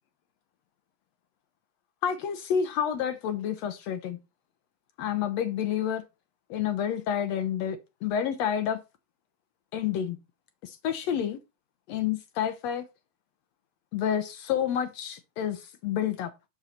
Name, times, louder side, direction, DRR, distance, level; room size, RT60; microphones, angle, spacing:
voice 1, 2.0-4.2 5.0-6.0 6.5-8.8 9.7-10.2 10.6-11.4 11.9-12.8 13.9-16.3, left 9 dB, 75° left, 1.5 m, -29 dB
7.4 x 6.4 x 4.1 m
omnidirectional pair, 3.8 m